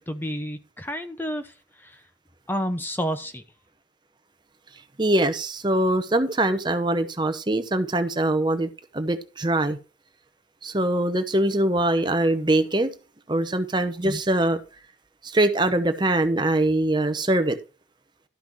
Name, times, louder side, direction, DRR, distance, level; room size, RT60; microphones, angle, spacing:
voice 1, 0.1-2.0 2.5-3.4 14.0-14.2, equal, 10° left, 8 dB, 0.8 m, -30 dB
voice 2, 5.0-9.8 10.6-12.9 13.3-14.6 15.2-17.6, right 1 dB, 25° right, 9 dB, 0.8 m, -23 dB
12.5 x 5.9 x 4.6 m, 0.32 s
head